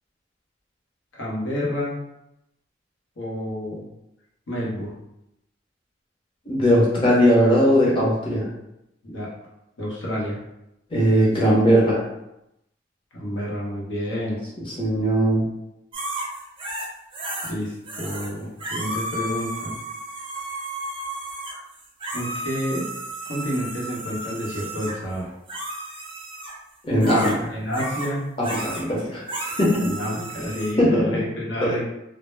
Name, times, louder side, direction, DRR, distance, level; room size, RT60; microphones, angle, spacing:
voice 1, 1.1-2.0 3.2-3.8 4.5-4.9 9.0-9.3 9.8-10.4 13.1-14.4 17.5-19.7 22.1-22.9 23.3-25.3 27.1-28.3 29.8-31.8, equal, 80° left, -4 dB, 0.8 m, -29 dB
voice 2, 6.5-8.5 10.9-12.0 14.8-15.4 26.8-27.3 28.4-29.8 30.8-31.2 31.6-31.7, equal, 30° left, -5 dB, 0.7 m, -19 dB
sound 1, 15.9-17.5 17.8-18.3 18.6-25.0 25.5-26.6 27.0-27.4 27.7-28.1 28.4-28.9 29.3-30.7, right 1 dB, 25° right, 0.5 m, -33 dB
2.0 x 2.0 x 3.1 m, 0.86 s
head